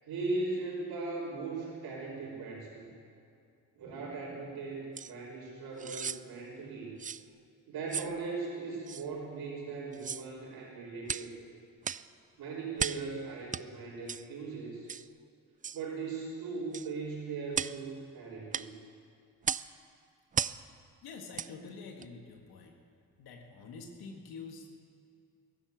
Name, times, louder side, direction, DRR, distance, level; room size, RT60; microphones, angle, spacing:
voice 1, 0.0-2.9 3.7-6.9 7.7-11.3 12.4-14.9 15.7-18.7, right 3 dB, 80° right, -9 dB, 3.5 m, -38 dB
sound 1, 5.0-5.1 5.8-6.2 7.0-7.2 7.9-8.1 8.9-9.1 9.9-10.3 11.1-11.3 11.8-12.1 12.8-13.1 13.5-13.6 14.1-14.3 14.9-15.1 15.6-15.8 16.7-16.9 17.5-17.8 18.5-18.7 19.4-19.7 20.3-20.6 21.3-21.5 22.0-22.1, right 7 dB, 25° right, 0.3 m, -35 dB
voice 2, 21.0-22.8 23.2-24.8, left 4 dB, 80° left, 2 dB, 1.7 m, -47 dB
14.5 x 11.5 x 8.3 m, 2.5 s
supercardioid pair, 65°, 36 cm